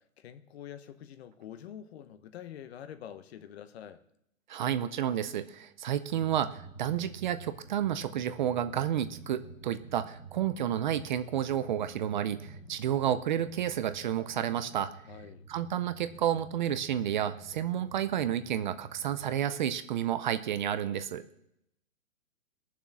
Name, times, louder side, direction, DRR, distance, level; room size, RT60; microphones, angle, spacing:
voice 1, 0.0-4.0 15.1-15.5, left 10 dB, 50° left, 1.0 m, -46 dB
voice 2, 4.5-14.9 15.5-21.2, right 10 dB, 35° right, 0.5 m, -31 dB
Drum, 6.1-19.5, right 4 dB, ahead, 1.7 m, -50 dB
19.5 x 7.2 x 6.0 m
hypercardioid pair, 155°, 40 cm